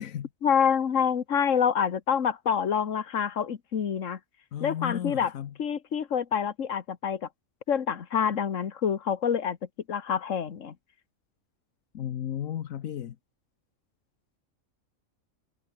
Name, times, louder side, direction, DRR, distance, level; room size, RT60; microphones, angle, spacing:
voice 1, 0.4-4.2 4.6-5.3 5.6-7.3 7.7-9.6 9.9-10.7, left 7 dB, 70° left, 1.7 m, -27 dB
voice 2, 4.5-5.5 11.9-13.2, left 10 dB, 90° left, 1.3 m, -34 dB
omnidirectional pair, 1.4 m